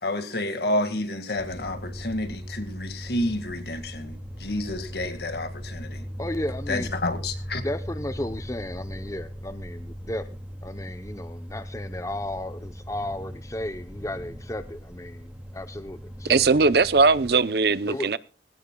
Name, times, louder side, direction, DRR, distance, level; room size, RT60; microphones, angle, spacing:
voice 1, 0.0-6.1 6.7-7.6, left 1 dB, 60° left, 2.0 m, -30 dB
sound 1, 1.4-17.4, equal, 5° right, 2.3 m, -39 dB
voice 2, 6.2-6.9 7.6-10.3 10.6-16.4 17.9-18.1, left 1 dB, 15° left, 0.8 m, -34 dB
voice 3, 16.3-18.2, right 4 dB, 60° right, 0.7 m, -19 dB
20.5 x 17.5 x 2.3 m
head